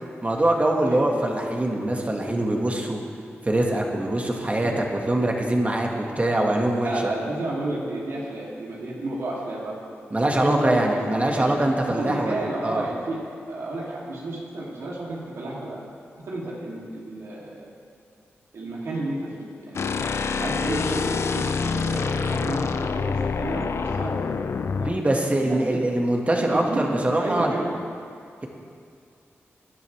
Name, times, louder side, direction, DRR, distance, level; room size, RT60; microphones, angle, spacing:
voice 1, 0.2-3.0 3.4-7.1 10.1-12.9 24.8-27.7, right 1 dB, 30° right, 0 dB, 2.1 m, -23 dB
voice 2, 6.8-9.8 10.2-11.5 11.9-13.2 13.5-15.8 16.2-17.7 18.5-20.0 20.4-24.9 25.4-25.9 26.4-27.7, right 2 dB, 85° right, -5 dB, 3.2 m, -32 dB
sound 1, 19.7-25.0, left 5 dB, 70° left, 0.6 m, -26 dB
20.5 x 10.5 x 3.6 m, 2.3 s
cardioid pair, 55°, 5 cm